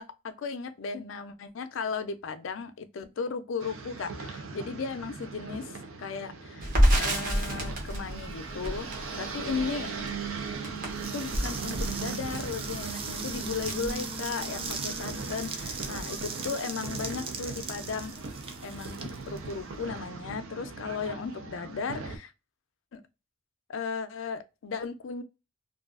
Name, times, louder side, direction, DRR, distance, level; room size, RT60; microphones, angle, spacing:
voice 1, 0.0-5.7 6.0-6.7 7.0-9.9 11.1-18.1 18.6-22.3 22.9-23.0 23.7-25.2, left 5 dB, 75° left, 0.4 m, -36 dB
sound 1, 3.6-22.2, right 4 dB, 80° right, 0.5 m, -39 dB
Crackle, 6.6-14.7 15.0-15.1 15.4-16.2, equal, 45° right, 0.8 m, -29 dB
sound 2, 10.9-19.9, right 5 dB, 30° right, 0.3 m, -39 dB
2.5 x 2.3 x 2.3 m
head